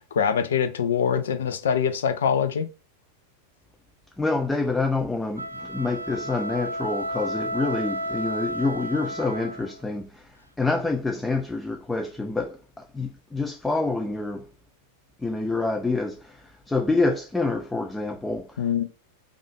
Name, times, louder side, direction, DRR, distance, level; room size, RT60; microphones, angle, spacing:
voice 1, 0.1-2.7 18.6-18.9, left 7 dB, 65° left, 0.6 m, -24 dB
voice 2, 4.2-14.5 15.2-18.7, left 3 dB, 10° left, 0.4 m, -27 dB
sound 1, 5.3-9.8, equal, 85° right, 0.4 m, -32 dB
4.9 x 2.5 x 3.7 m
figure-of-eight pair, 90°, 0 cm